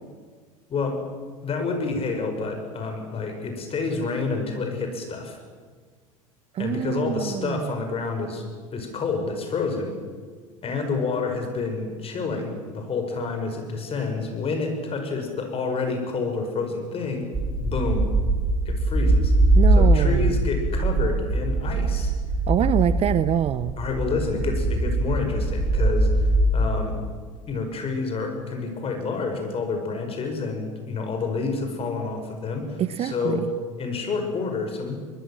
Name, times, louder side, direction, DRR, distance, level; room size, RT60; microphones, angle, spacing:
voice 1, 0.7-1.0 1.4-5.4 6.6-9.9 10.6-17.3 17.6-18.0 18.6-19.3 19.7-22.1 23.8-27.0 27.5-33.5 33.8-35.0, left 4 dB, 30° left, 4 dB, 6.4 m, -28 dB
voice 2, 6.5-7.7 19.5-20.3 22.5-23.8 32.8-33.5, right 10 dB, 35° right, 16 dB, 0.8 m, -25 dB
sound 1, 17.3-26.5, right 2 dB, 15° right, 5.5 m, -22 dB
24.0 x 21.0 x 7.6 m, 1.5 s
hypercardioid pair, 80°, 18 cm